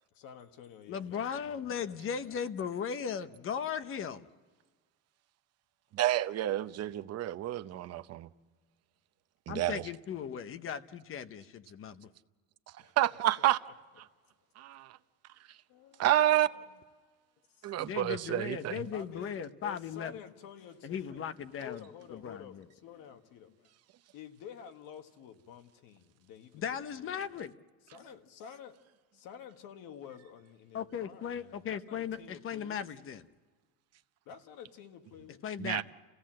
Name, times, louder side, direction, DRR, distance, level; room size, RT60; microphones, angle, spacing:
voice 1, 0.1-2.4 10.2-10.4 12.8-12.9 13.4-13.5 15.7-16.0 17.6-17.7 18.9-21.2 21.6-23.7 24.1-26.6 26.9-27.1 27.9-28.8 29.1-32.8 34.2-35.4, left 8 dB, 70° left, 1.7 m, -50 dB
voice 2, 0.9-4.3 9.5-12.1 17.8-20.2 20.8-21.8 22.1-22.6 26.5-27.5 30.7-33.2 35.4-35.8, left 7 dB, 35° left, 0.9 m, -37 dB
voice 3, 5.9-8.3 9.5-9.9 13.0-13.6 14.0-14.1 14.6-15.0 15.5-15.6 16.0-16.5 17.6-18.8 35.6-35.8, right 13 dB, 45° right, 0.7 m, -29 dB
29.5 x 16.5 x 7.6 m
cardioid pair, 160°, 35 cm